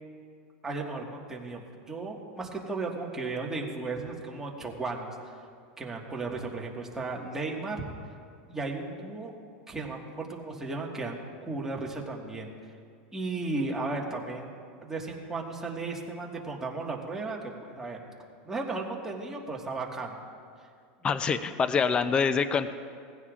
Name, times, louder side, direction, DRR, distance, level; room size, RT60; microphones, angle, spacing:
voice 1, 0.6-5.3 5.8-7.8 8.5-9.3 9.7-12.5 13.1-14.5 14.8-18.0 18.5-20.2 21.0-21.2, right 3 dB, 10° right, -1 dB, 1.7 m, -35 dB
voice 2, 21.0-22.7, left 5 dB, 20° left, 11 dB, 0.5 m, -25 dB
20.0 x 15.5 x 2.5 m, 2.2 s
supercardioid pair, 140°, 5 cm